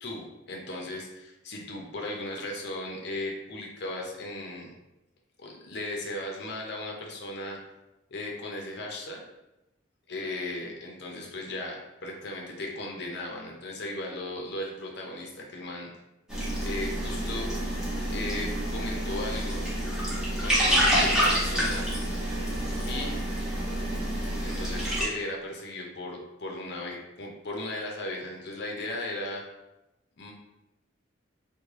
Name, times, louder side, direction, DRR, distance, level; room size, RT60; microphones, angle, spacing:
voice 1, 0.0-4.7 5.4-7.6 8.1-9.2 10.1-11.8 12.0-15.9 16.6-17.5 18.1-19.6 20.4-21.9 22.9-23.1 24.4-29.4 30.2-30.3, left 2 dB, 55° left, 0 dB, 0.6 m, -36 dB
sound 1, 16.3-25.0, right 1 dB, 5° right, 0.7 m, -28 dB
3.2 x 2.2 x 3.5 m, 0.96 s
head